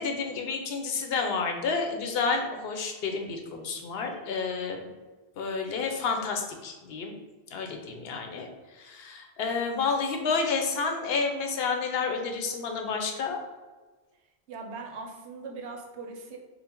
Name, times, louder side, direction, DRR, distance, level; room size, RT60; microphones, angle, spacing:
voice 1, 0.0-4.9 5.4-7.1 7.5-8.5 8.7-13.4, left 4 dB, 70° left, 4 dB, 0.8 m, -30 dB
voice 2, 14.5-16.4, right 4 dB, 85° right, 2 dB, 0.9 m, -40 dB
3.8 x 2.1 x 4.3 m, 1.3 s
omnidirectional pair, 1.1 m